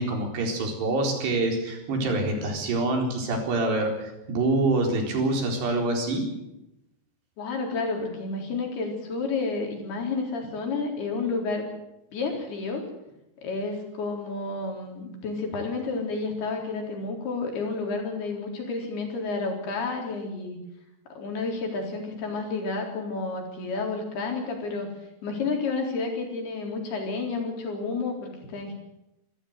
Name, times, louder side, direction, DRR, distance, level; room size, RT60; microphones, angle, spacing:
voice 1, 0.0-6.2, right 2 dB, 85° right, 2 dB, 6.4 m, -26 dB
voice 2, 7.4-11.7 12.1-12.8 13.4-20.6 21.1-24.9 25.2-28.7, left 3 dB, 70° left, 2 dB, 6.0 m, -30 dB
25.5 x 14.5 x 8.2 m, 0.87 s
omnidirectional pair, 4.7 m